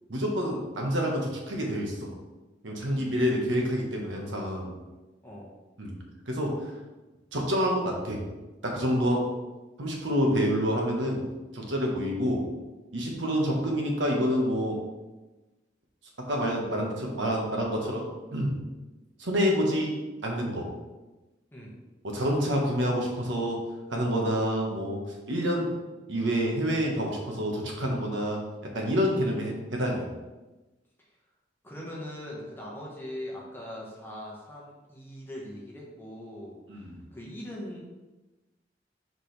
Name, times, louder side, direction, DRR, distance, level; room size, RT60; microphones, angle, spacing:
voice 1, 0.1-2.1 2.6-4.7 5.8-5.9 6.3-6.7 7.3-8.2 8.6-9.3 9.8-11.2 11.5-12.5 12.9-14.8 16.2-18.1 18.3-18.6 19.2-20.7 22.0-23.6 23.9-25.0 25.3-25.7 26.1-28.4 28.7-30.1 36.7-36.9, equal, 85° right, 0 dB, 1.3 m, -27 dB
voice 2, 2.8-3.1 5.2-5.5 21.5-21.7 31.6-37.8, left 1 dB, 10° left, -4 dB, 1.3 m, -41 dB
5.9 x 5.0 x 3.3 m, 1.1 s
head